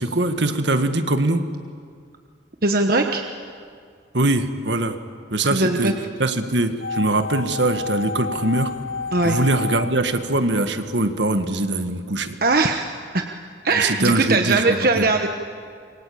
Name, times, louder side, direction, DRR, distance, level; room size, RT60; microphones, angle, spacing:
voice 1, 0.0-1.4 4.1-5.0 5.3-5.9 6.2-8.7 9.2-12.4 13.7-15.1, right 2 dB, 65° right, 8 dB, 1.8 m, -22 dB
voice 2, 2.6-3.2 5.4-5.9 9.1-9.4 12.4-13.2 13.6-15.3, right 3 dB, 50° right, 4 dB, 1.2 m, -20 dB
sound 1, 6.8-10.9 11.2-11.3, left 4 dB, 80° left, 1.2 m, -31 dB
27.0 x 23.5 x 8.7 m, 2.1 s
head